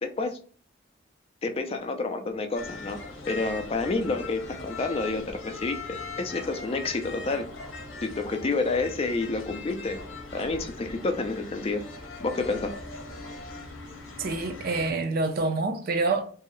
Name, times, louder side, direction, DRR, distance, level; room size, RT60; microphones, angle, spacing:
voice 1, 0.0-0.4 1.4-3.0 3.3-7.5 8.0-10.0 10.3-11.8 12.2-12.7, left 3 dB, 30° left, 0.4 m, -29 dB
sound 1, 2.6-14.9, left 3 dB, 70° left, 0.8 m, -40 dB
voice 2, 14.2-16.3, right 3 dB, 50° right, 0.4 m, -27 dB
2.7 x 2.0 x 3.7 m
head